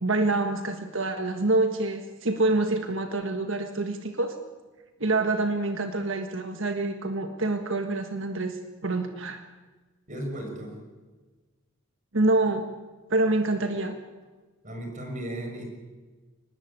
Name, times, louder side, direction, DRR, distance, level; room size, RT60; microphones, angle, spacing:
voice 1, 0.0-4.3 5.0-9.4 12.1-12.7 13.1-14.0, right 2 dB, 60° right, 6 dB, 1.6 m, -26 dB
voice 2, 10.1-10.8 14.6-15.7, right 1 dB, 35° right, 3 dB, 6.5 m, -35 dB
24.0 x 19.5 x 8.7 m, 1.3 s
head